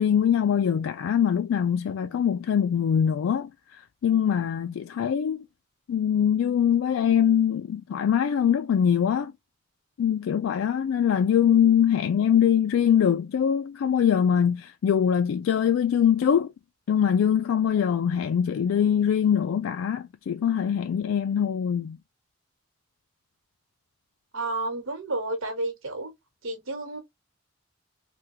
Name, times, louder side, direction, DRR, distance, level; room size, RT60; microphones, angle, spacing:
voice 1, 0.0-3.5 4.0-5.4 5.9-9.3 10.0-16.5 16.9-22.0, left 8 dB, 85° left, 0.3 m, -23 dB
voice 2, 24.3-26.1 26.4-27.0, right 2 dB, 90° right, 1.2 m, -31 dB
3.5 x 2.3 x 2.7 m
head